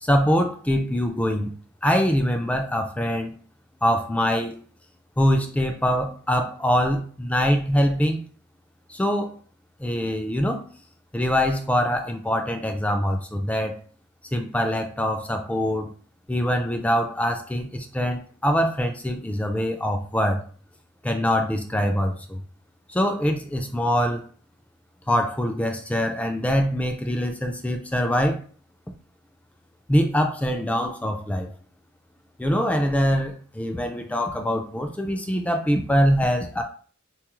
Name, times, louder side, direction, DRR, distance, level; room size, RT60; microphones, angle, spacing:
voice 1, 0.0-1.5 1.8-3.3 3.8-4.6 5.2-8.2 8.9-9.3 9.8-10.6 11.1-13.8 14.3-15.9 16.3-20.4 21.0-22.4 22.9-24.2 25.1-28.4 29.9-31.5 32.4-36.6, equal, 5° left, 5 dB, 0.3 m, -23 dB
3.8 x 2.4 x 3.0 m, 0.43 s
head